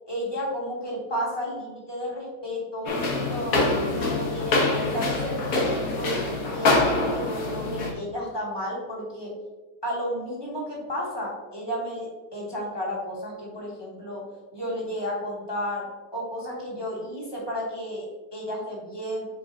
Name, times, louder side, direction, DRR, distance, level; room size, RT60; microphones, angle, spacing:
voice 1, 0.1-6.1 6.5-9.3 9.8-14.2 14.5-15.8 16.1-18.0 18.3-19.3, equal, 15° left, -5 dB, 2.1 m, -32 dB
sound 1, 2.9-7.9, left 2 dB, 60° left, 1.6 m, -25 dB
8.7 x 4.8 x 2.8 m, 1.2 s
omnidirectional pair, 1.7 m